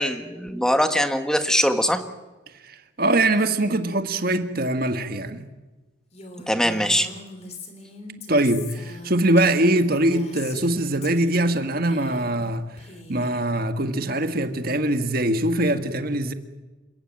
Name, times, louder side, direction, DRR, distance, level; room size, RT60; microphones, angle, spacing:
voice 1, 0.0-2.0 6.5-7.1, equal, 5° left, 1.4 m, -22 dB
voice 2, 2.6-5.5 8.3-12.7 13.1-16.3, right 1 dB, 50° right, 1.6 m, -22 dB
Female speech woman speaking, 6.1-10.7 11.0-11.6 11.8-12.5 12.8-13.4, left 3 dB, 35° left, 3.2 m, -41 dB
27.5 x 15.0 x 9.0 m
head